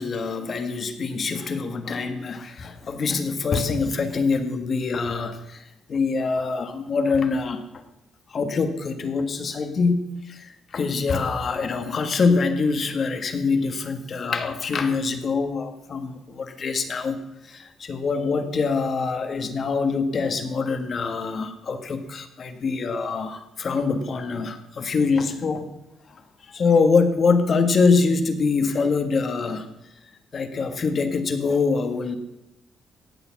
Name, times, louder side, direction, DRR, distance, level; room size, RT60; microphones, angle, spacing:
voice 1, 0.0-5.6 5.9-7.6 8.3-17.2 17.5-25.7 26.5-29.7 30.3-32.2, left 4 dB, 50° left, 8 dB, 1.6 m, -24 dB
17.5 x 7.0 x 5.9 m, 0.88 s
cardioid pair, 90°, 0 cm